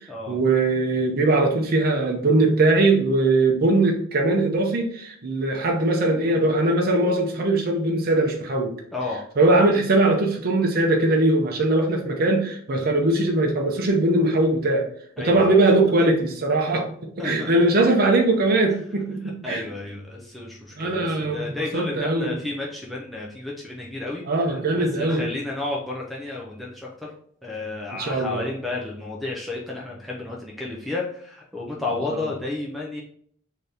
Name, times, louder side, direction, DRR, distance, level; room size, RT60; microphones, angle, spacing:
voice 1, 0.3-8.7 9.4-14.9 15.2-16.9 17.2-19.6 20.8-22.3 24.3-25.3 28.0-28.5 32.1-32.2, right 2 dB, 45° right, 0 dB, 0.6 m, -21 dB
voice 2, 15.2-15.7 17.2-17.5 19.4-27.1 27.4-33.0, left 2 dB, ahead, -5 dB, 0.4 m, -32 dB
3.8 x 2.7 x 3.3 m, 0.62 s
head